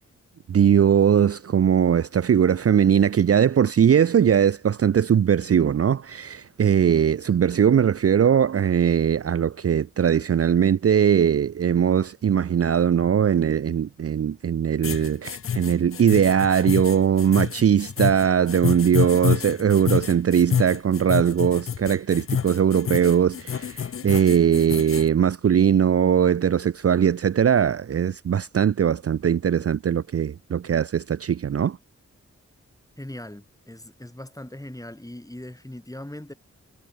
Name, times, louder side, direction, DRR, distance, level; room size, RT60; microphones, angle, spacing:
voice 1, 0.5-31.8, right 8 dB, 50° right, 0.5 m, -20 dB
sound 1, 14.8-25.1, left 8 dB, 45° left, 0.5 m, -28 dB
voice 2, 33.0-36.3, left 1 dB, 10° left, 2.7 m, -39 dB
cardioid pair, 45°, 30 cm